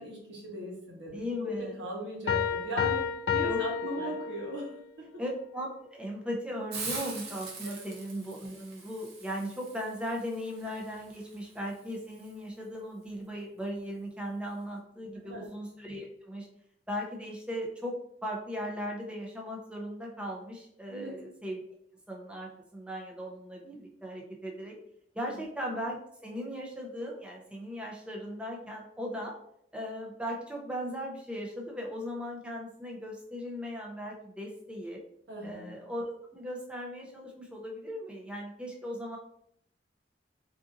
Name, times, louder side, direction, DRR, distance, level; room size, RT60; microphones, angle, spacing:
voice 1, 0.0-4.7 7.6-7.7 15.2-15.5 20.9-21.2 25.3-25.4 35.3-35.7, equal, 80° right, -1 dB, 1.0 m, -38 dB
voice 2, 1.1-1.7 3.4-3.6 4.0-4.1 5.2-16.5 16.9-21.6 22.1-24.8 25.1-26.0 26.2-29.3 29.7-35.0 35.4-39.2, equal, 5° right, -1 dB, 0.5 m, -38 dB
Piano, 2.3-4.8, left 7 dB, 65° left, 0.3 m, -30 dB
Hiss, 6.7-12.3, right 4 dB, 60° right, 0.8 m, -43 dB
3.9 x 2.5 x 2.4 m, 0.72 s
head